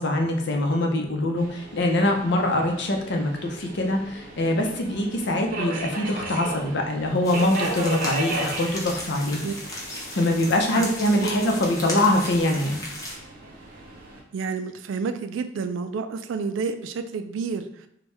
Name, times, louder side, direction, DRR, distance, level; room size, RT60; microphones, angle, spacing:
voice 1, 0.0-9.4 10.1-12.8, left 1 dB, 65° left, 2 dB, 0.6 m, -23 dB
Subway metro underground, 1.4-14.2, right 1 dB, 50° right, 0.8 m, -36 dB
sound 1, 7.2-13.1, left 1 dB, 20° left, 0.8 m, -36 dB
voice 2, 14.3-17.9, right 5 dB, 80° right, 9 dB, 0.3 m, -30 dB
4.3 x 2.2 x 3.3 m, 0.73 s
head